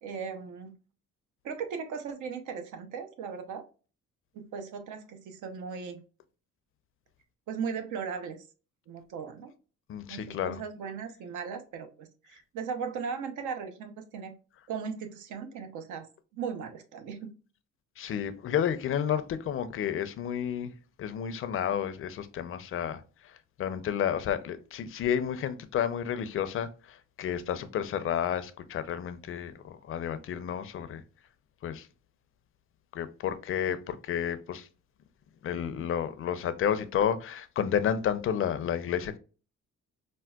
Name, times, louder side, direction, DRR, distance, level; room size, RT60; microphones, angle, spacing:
voice 1, 0.0-0.8 1.4-3.7 4.3-6.0 7.5-8.4 8.9-9.5 10.1-14.4 14.7-16.1 16.3-17.3, right 6 dB, 80° right, 0.7 m, -37 dB
voice 2, 9.9-10.6 18.0-20.7 21.0-23.0 23.6-26.7 27.2-29.5 29.9-31.0 31.6-31.8 32.9-34.6 35.4-39.2, left 9 dB, 45° left, 0.4 m, -31 dB
4.4 x 2.1 x 2.3 m
cardioid pair, 90°, 30 cm